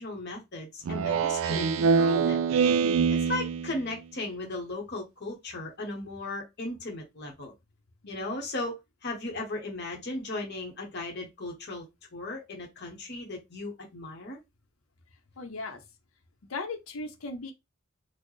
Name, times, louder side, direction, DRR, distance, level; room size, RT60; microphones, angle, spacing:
voice 1, 0.0-2.5 3.1-7.5 8.1-11.8 12.1-14.4, left 2 dB, 55° left, 1.0 m, -36 dB
Speech synthesizer, 0.9-3.9, right 5 dB, 75° right, 0.3 m, -24 dB
voice 2, 15.4-15.8 16.5-17.5, left 3 dB, 80° left, 0.7 m, -37 dB
4.3 x 2.1 x 3.1 m
head